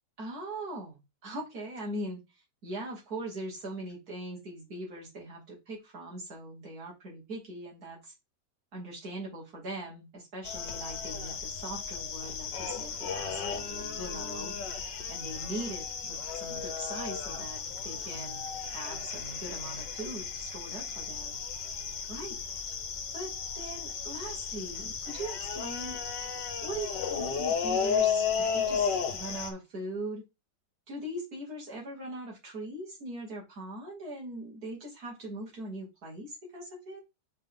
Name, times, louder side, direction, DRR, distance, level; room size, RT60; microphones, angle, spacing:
voice 1, 0.2-2.2 2.6-8.1 8.7-14.5 15.1-21.4 22.1-22.3 23.1-26.0 26.6-30.2 30.9-37.0, right 1 dB, 55° right, -3 dB, 3.3 m, -41 dB
sound 1, 10.4-29.5, left 6 dB, 75° left, 1.6 m, -34 dB
5.5 x 5.1 x 3.8 m, 0.25 s
omnidirectional pair, 2.0 m